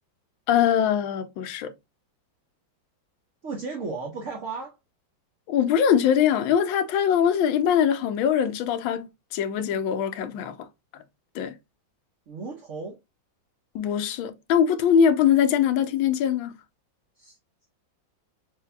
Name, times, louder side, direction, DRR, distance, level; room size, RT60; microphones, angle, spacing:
voice 1, 0.5-1.7 5.5-10.7 11.3-11.5 13.7-16.5, left 8 dB, 85° left, 1.4 m, -22 dB
voice 2, 3.4-4.8 12.3-13.0 17.2-17.4, right 4 dB, 55° right, 0.9 m, -34 dB
6.7 x 2.7 x 2.2 m
omnidirectional pair, 2.1 m